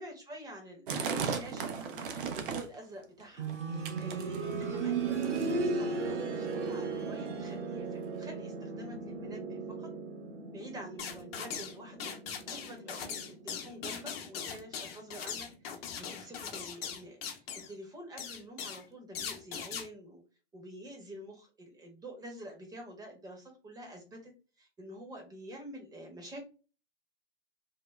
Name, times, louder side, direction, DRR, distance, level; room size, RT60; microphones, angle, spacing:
voice 1, 0.0-9.9 10.5-12.1 12.5-20.2 20.5-24.3 24.6-26.4, right 1 dB, 10° right, 2 dB, 0.8 m, -48 dB
sound 1, 0.9-2.8 3.2-3.6 3.8-4.7 5.2-5.6 6.3-6.4 6.6-6.7 7.4-7.5 8.2-8.3, right 6 dB, 50° right, 0.6 m, -36 dB
sound 2, 3.4-14.1 14.4-14.5 15.4-15.5, right 4 dB, 75° right, 0.8 m, -36 dB
sound 3, 11.0-11.7 12.0-17.7 18.2-18.8 19.1-19.9, left 7 dB, 55° left, 0.8 m, -40 dB
3.4 x 2.1 x 2.2 m, 0.34 s
figure-of-eight pair, 110°, 36 cm